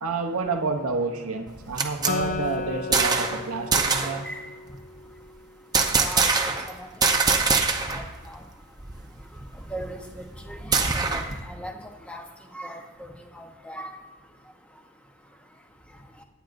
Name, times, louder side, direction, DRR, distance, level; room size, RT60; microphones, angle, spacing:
voice 1, 0.0-4.3, right 4 dB, 75° right, 4 dB, 0.9 m, -29 dB
sound 1, 1.5-3.4 3.7-4.2 5.7-6.7 7.0-8.1 8.4-8.5 8.8-11.4, right 4 dB, 20° right, 0.8 m, -24 dB
Acoustic guitar, 2.1-5.5, left 4 dB, 35° left, 0.5 m, -34 dB
voice 2, 5.9-6.5 6.8-6.9 7.9-8.0 9.7-11.7 12.1-12.2 12.5-13.9, right 1 dB, 5° left, 3 dB, 1.0 m, -38 dB
24.0 x 9.2 x 2.6 m, 1.4 s
head